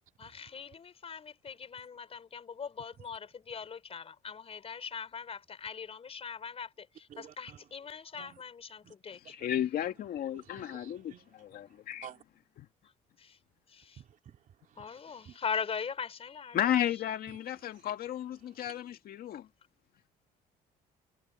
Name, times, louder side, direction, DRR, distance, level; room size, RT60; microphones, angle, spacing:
voice 1, 0.2-9.3 13.2-13.4 13.7-14.0 14.8-17.5, left 6 dB, 35° left, 4.3 m, -41 dB
voice 2, 7.1-7.7 8.2-8.4 8.8-8.9 9.4-9.5 10.2-12.2 14.0-15.4 17.3-17.9 18.4-18.7, right 9 dB, 50° right, 2.9 m, -54 dB
voice 3, 9.3-12.1 16.5-19.5, left 11 dB, 60° left, 2.0 m, -33 dB
cardioid pair, 110°, 17 cm